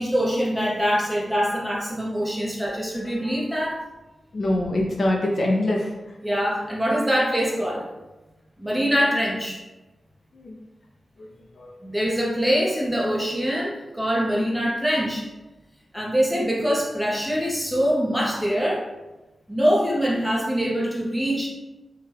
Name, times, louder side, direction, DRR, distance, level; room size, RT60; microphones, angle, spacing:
voice 1, 0.0-3.8 6.2-7.9 8.6-9.6 11.8-15.3 15.9-18.9 19.5-21.5, equal, 5° right, -5 dB, 0.9 m, -24 dB
voice 2, 4.3-6.1 10.3-10.6 11.2-11.3 11.6-11.7, left 1 dB, 55° left, -2 dB, 0.5 m, -24 dB
2.8 x 2.3 x 3.2 m, 1.1 s
cardioid pair, 70°, 0 cm